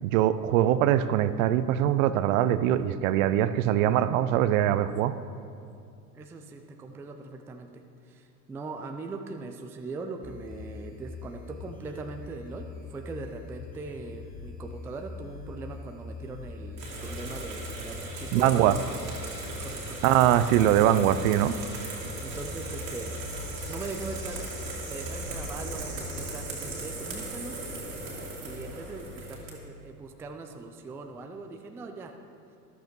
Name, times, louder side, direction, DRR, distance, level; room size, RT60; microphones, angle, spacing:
voice 1, 0.0-5.2 18.3-18.7 20.0-21.5, right 12 dB, 55° right, 13 dB, 0.6 m, -22 dB
voice 2, 6.1-18.8 19.5-20.0 22.2-23.2 23.7-24.5 24.9-27.6 28.4-32.1, right 3 dB, 5° right, 4 dB, 0.3 m, -40 dB
sound 1, 10.2-26.2, left 4 dB, 15° left, 1.1 m, -43 dB
sound 2, 16.8-29.5, right 2 dB, 85° right, 2.4 m, -38 dB
13.5 x 12.0 x 3.1 m, 2.4 s
hypercardioid pair, 85°, 49 cm